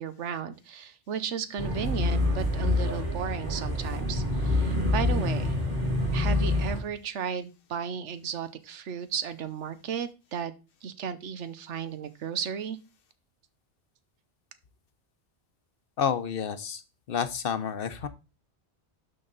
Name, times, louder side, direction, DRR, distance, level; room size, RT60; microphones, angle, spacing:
voice 1, 0.0-5.6 6.1-10.5 10.8-12.8, right 7 dB, 90° right, 12 dB, 1.1 m, -34 dB
sound 1, 1.6-6.8, left 2 dB, 40° right, 2.4 m, -27 dB
voice 2, 16.0-16.8 17.1-18.1, left 7 dB, 60° left, 11 dB, 0.8 m, -29 dB
11.5 x 3.9 x 3.9 m, 0.30 s
omnidirectional pair, 1.2 m